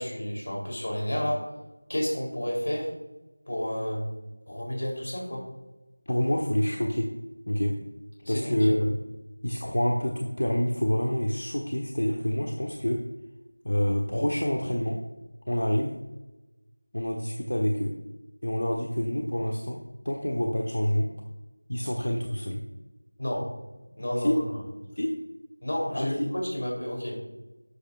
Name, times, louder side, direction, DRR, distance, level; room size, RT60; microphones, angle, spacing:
voice 1, 0.0-1.4 1.9-2.9 3.5-4.1 4.5-5.5 8.2-8.7 23.2-23.5 24.0-24.4 25.6-26.2 26.5-27.2, equal, 45° left, -2 dB, 3.7 m, -30 dB
voice 2, 6.1-7.1 7.5-7.7 8.3-9.0 9.4-13.0 13.6-15.0 15.5-16.0 16.9-17.9 18.4-19.8 20.0-21.1 21.7-22.6 24.2-24.4 25.0-25.1 25.9-26.3, equal, 70° left, 1 dB, 1.3 m, -27 dB
12.0 x 10.0 x 2.6 m, 1.1 s
figure-of-eight pair, 180°, 0 cm